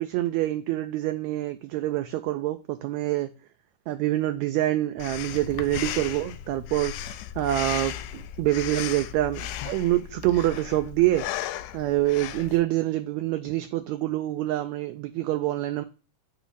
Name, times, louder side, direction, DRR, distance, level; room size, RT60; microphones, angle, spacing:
voice 1, 0.0-3.3 3.9-11.3 11.7-15.8, right 15 dB, 80° right, 1.6 m, -26 dB
Breathing, 5.0-12.6, left 11 dB, 85° left, 2.0 m, -35 dB
8.4 x 3.1 x 5.4 m
omnidirectional pair, 3.7 m